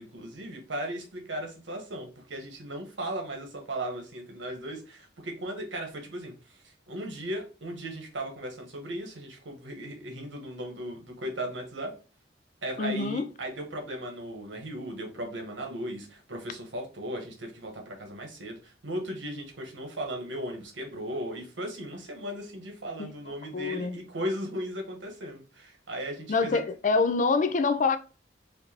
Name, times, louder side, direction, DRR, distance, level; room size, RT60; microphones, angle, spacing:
voice 1, 0.0-11.9 12.6-26.6, right 1 dB, 85° right, 1.2 m, -37 dB
voice 2, 12.8-13.2 23.0-23.1 23.5-24.0 26.3-28.0, left 4 dB, 40° left, 0.4 m, -25 dB
4.4 x 2.6 x 2.8 m
head